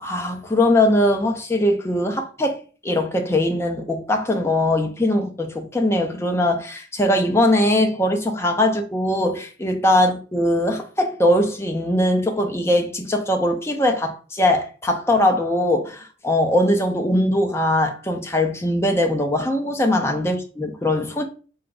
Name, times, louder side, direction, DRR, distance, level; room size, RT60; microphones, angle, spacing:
voice 1, 0.0-21.3, left 1 dB, 15° left, 0.6 m, -21 dB
3.9 x 2.3 x 3.9 m
head